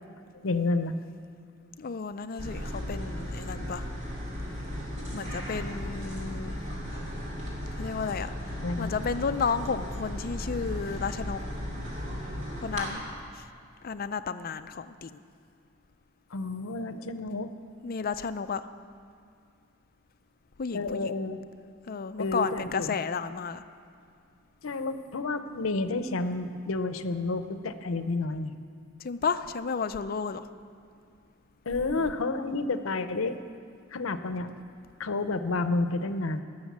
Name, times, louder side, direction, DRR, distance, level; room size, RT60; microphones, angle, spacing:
voice 1, 0.4-0.9 8.6-8.9 16.3-17.5 20.7-21.4 22.2-22.9 24.6-28.5 31.7-33.4 33.9-34.5 35.0-36.4, left 3 dB, 90° left, 11 dB, 0.7 m, -30 dB
voice 2, 1.8-3.8 5.1-6.6 7.7-11.4 12.6-13.0 13.3-13.4 13.8-15.2 17.8-18.6 20.6-21.2 21.9-23.6 29.0-30.5 31.8-32.1, left 5 dB, 45° left, 12 dB, 0.5 m, -32 dB
sound 1, 2.4-12.9, equal, 35° right, 2.8 m, -36 dB
19.0 x 6.4 x 7.2 m, 2.3 s
head